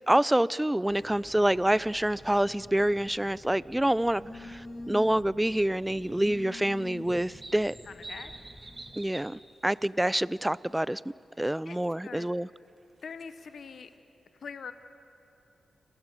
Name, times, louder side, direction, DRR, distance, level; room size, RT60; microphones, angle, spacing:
voice 1, 0.1-7.7 9.0-11.0 11.4-12.5, right 1 dB, 10° right, 21 dB, 0.4 m, -27 dB
Telephone, 0.9-8.9, left 2 dB, 15° left, 5.5 m, -47 dB
sound 1, 5.7-10.8 11.1-11.5 12.7-13.9, right 2 dB, 35° right, 1.5 m, -49 dB
voice 2, 7.9-8.3 11.4-11.8 12.0-12.3 13.0-13.9 14.4-14.7, left 6 dB, 70° left, 10 dB, 0.9 m, -43 dB
29.5 x 15.5 x 6.7 m, 3.0 s
cardioid pair, 55°, 0 cm